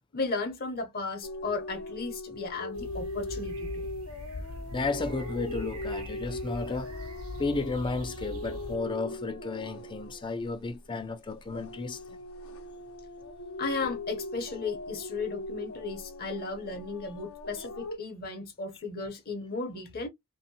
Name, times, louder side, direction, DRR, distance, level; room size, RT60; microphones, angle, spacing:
voice 1, 0.1-3.9 13.6-20.1, left 3 dB, 45° left, 0.7 m, -35 dB
sound 1, 1.2-11.0 11.4-18.0, left 1 dB, 80° left, 0.7 m, -40 dB
sound 2, 2.7-8.8, left 1 dB, 85° right, 0.9 m, -42 dB
voice 2, 4.7-6.9 7.4-12.0, left 3 dB, 25° left, 0.4 m, -33 dB
2.7 x 2.1 x 2.6 m
head